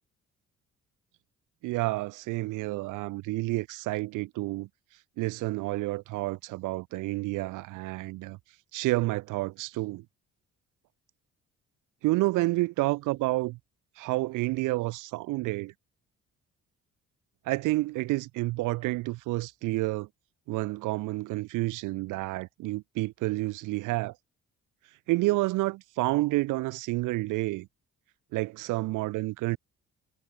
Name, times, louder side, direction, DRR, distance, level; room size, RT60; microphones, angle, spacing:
voice 1, 1.6-4.7 5.2-8.4 8.7-10.0 12.0-13.6 14.0-15.7 17.5-20.1 20.5-24.1 25.1-27.7 28.3-29.6, right 20 dB, 90° right, 0.5 m, -29 dB
cardioid pair, 90°, 30 cm